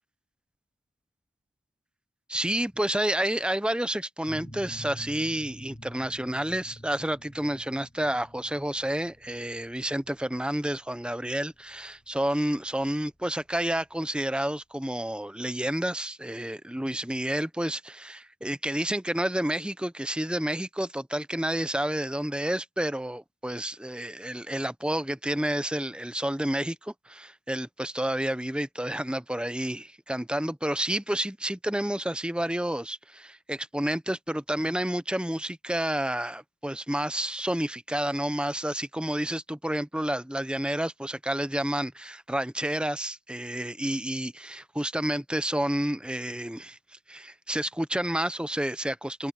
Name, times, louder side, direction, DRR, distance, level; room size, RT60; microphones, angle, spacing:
voice 1, 2.3-46.8 47.1-49.3, right 1 dB, 5° right, 0.7 m, -30 dB
sound 1, 4.3-13.7, equal, 35° left, 6.3 m, -48 dB
head